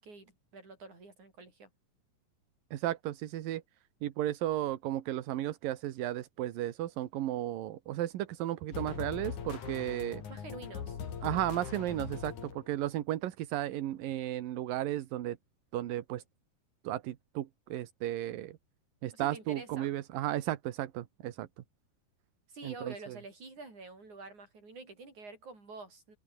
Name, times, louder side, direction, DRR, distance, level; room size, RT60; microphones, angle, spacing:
voice 1, 0.0-1.7 10.3-11.0 19.1-20.0 22.5-26.2, right 3 dB, 60° right, 9.6 m, -48 dB
voice 2, 2.7-3.6 4.0-10.2 11.2-15.4 15.7-16.2 16.8-18.6 19.0-21.6 22.6-23.2, right 13 dB, 85° right, 3.0 m, -34 dB
sound 1, 8.7-12.9, left 7 dB, 60° left, 4.2 m, -41 dB
omnidirectional pair, 3.9 m